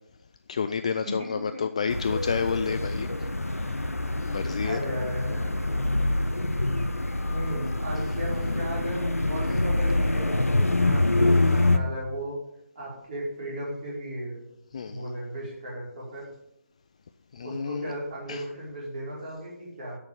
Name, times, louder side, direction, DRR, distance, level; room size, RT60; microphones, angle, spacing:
voice 1, 0.5-3.1 3.5-3.8 4.2-4.8 14.7-15.1 17.3-17.9 18.3-18.4, left 6 dB, 25° left, 9 dB, 0.3 m, -30 dB
voice 2, 1.0-1.6 4.6-5.6 7.2-12.3 12.7-14.4 14.8-16.2 17.4-20.0, equal, 35° right, -5 dB, 5.0 m, -36 dB
sound 1, 1.9-11.8, left 2 dB, 85° left, 0.9 m, -25 dB
10.5 x 6.4 x 6.9 m, 0.81 s
figure-of-eight pair, 155°, 8 cm